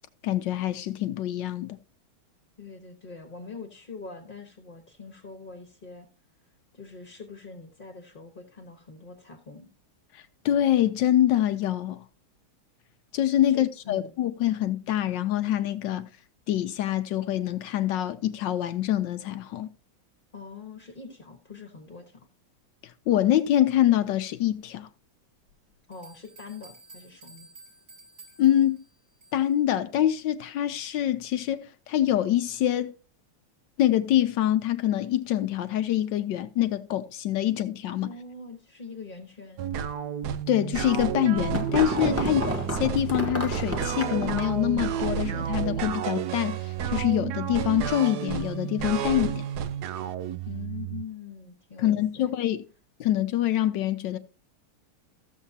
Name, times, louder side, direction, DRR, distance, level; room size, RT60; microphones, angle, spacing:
voice 1, 0.2-1.8 10.1-12.0 13.1-16.1 16.5-19.7 23.1-24.9 28.4-28.8 29.3-32.9 33.8-38.1 40.5-42.4 42.8-49.5 51.8-52.6 53.0-54.2, left 12 dB, 75° left, 1.1 m, -25 dB
voice 2, 2.6-6.1 6.4-9.7 13.5-14.1 20.3-22.3 25.9-27.5 38.0-39.7 50.4-52.3, left 4 dB, 30° left, 1.0 m, -43 dB
sound 1, 25.5-25.6 25.9-29.6, right 2 dB, 45° right, 4.8 m, -52 dB
sound 2, 39.6-51.0, right 9 dB, 75° right, 0.9 m, -31 dB
sound 3, 41.3-44.6, equal, 10° right, 0.9 m, -31 dB
14.5 x 7.3 x 2.8 m
omnidirectional pair, 2.4 m